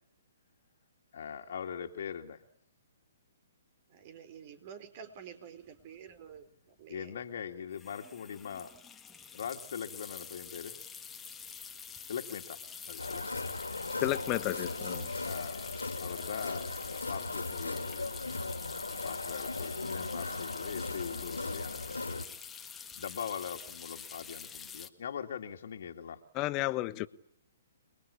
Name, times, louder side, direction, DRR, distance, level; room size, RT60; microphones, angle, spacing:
voice 1, 1.1-2.4 6.9-8.7 9.3-10.7 12.1-13.4 15.2-18.1 18.9-22.3 22.9-26.2, left 7 dB, 60° left, 2.3 m, -41 dB
voice 2, 3.9-7.1, right 8 dB, 40° right, 4.3 m, -49 dB
sound 1, 5.8-5.9 6.1-6.4 7.7-24.9, left 6 dB, 10° left, 1.8 m, -46 dB
sound 2, 13.0-22.2, left 2 dB, 85° left, 2.7 m, -37 dB
voice 3, 14.0-15.1 26.3-27.1, left 17 dB, 30° left, 1.3 m, -32 dB
29.5 x 22.0 x 8.5 m
figure-of-eight pair, 125°, 0 cm